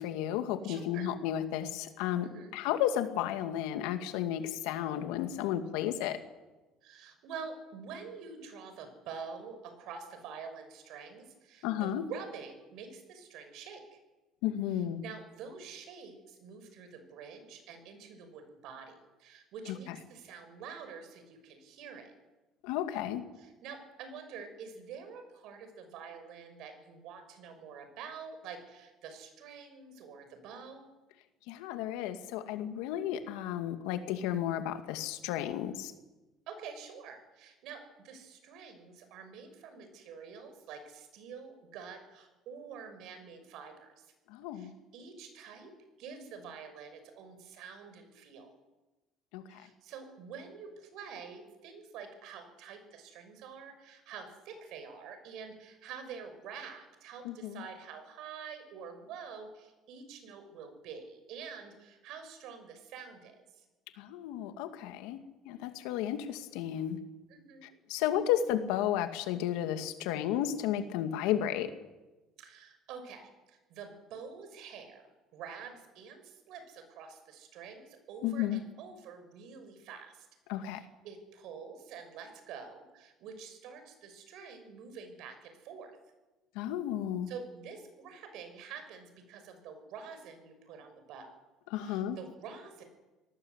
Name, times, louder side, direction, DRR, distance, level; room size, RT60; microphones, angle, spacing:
voice 1, 0.0-6.2 11.6-12.0 14.4-15.0 19.9-20.0 22.6-23.3 31.5-35.9 44.3-44.7 49.3-49.6 57.2-57.7 64.0-65.2 65.5-67.0 67.6-71.7 78.2-78.6 80.5-80.8 86.5-87.3 91.7-92.2, left 11 dB, 85° left, 8 dB, 2.3 m, -33 dB
voice 2, 0.6-1.1 2.2-2.5 6.8-14.0 15.0-22.1 23.4-30.9 36.5-44.1 44.5-45.7 46.0-48.5 49.5-63.7 67.3-67.7 72.4-75.0 75.3-80.3 80.6-86.0 87.3-91.3 91.8-92.8, right 6 dB, 70° right, 7 dB, 6.0 m, -47 dB
26.0 x 18.5 x 8.3 m, 1.1 s
cardioid pair, 125°, 0 cm